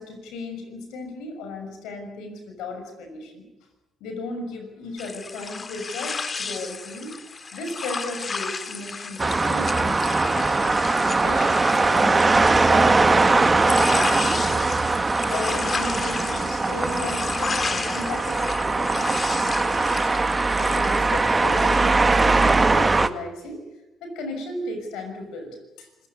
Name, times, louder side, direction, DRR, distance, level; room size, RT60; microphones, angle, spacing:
voice 1, 0.0-3.5 4.0-14.7 15.3-20.1 20.6-23.6 24.0-26.1, left 2 dB, 80° left, 5 dB, 6.3 m, -35 dB
sound 1, 5.0-23.1, left 4 dB, 40° left, 1.9 m, -33 dB
sound 2, 9.2-23.1, right 3 dB, 30° right, 1.5 m, -21 dB
26.5 x 15.5 x 9.7 m, 1.0 s
supercardioid pair, 55°, 0 cm